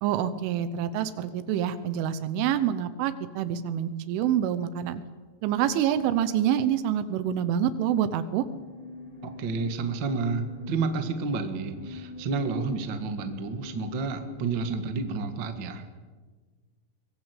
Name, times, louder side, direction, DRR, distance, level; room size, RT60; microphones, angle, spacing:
voice 1, 0.0-5.0 5.4-8.5, right 10 dB, 90° right, 12 dB, 3.4 m, -26 dB
sound 1, 8.4-15.2, left 3 dB, 70° left, 9.4 m, -44 dB
voice 2, 9.2-15.9, right 4 dB, 65° right, 7 dB, 1.1 m, -30 dB
23.5 x 20.0 x 8.3 m, 1.4 s
omnidirectional pair, 5.4 m